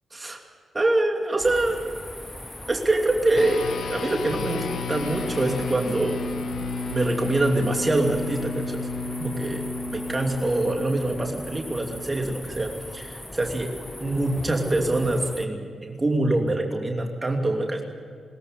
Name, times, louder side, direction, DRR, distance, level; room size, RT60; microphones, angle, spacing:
voice 1, 0.7-1.8 2.7-6.2 6.9-8.9 9.2-9.7 9.9-17.8, right 2 dB, 30° right, 2 dB, 2.8 m, -25 dB
sound 1, 1.4-15.5, left 1 dB, 20° left, 1.2 m, -40 dB
sound 2, 3.4-13.0, left 3 dB, 70° left, 1.1 m, -32 dB
22.0 x 14.0 x 9.6 m, 2.1 s
supercardioid pair, 50°, 0 cm